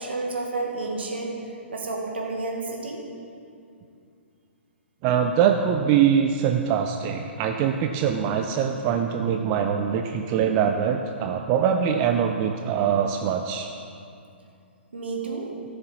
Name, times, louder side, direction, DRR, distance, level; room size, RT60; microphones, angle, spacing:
voice 1, 0.0-1.4 1.7-3.0 14.9-15.5, right 3 dB, 65° right, 0 dB, 1.7 m, -30 dB
voice 2, 5.0-13.7, right 8 dB, 30° right, 4 dB, 0.4 m, -23 dB
14.5 x 6.8 x 4.1 m, 2.5 s
figure-of-eight pair, 120°, 6 cm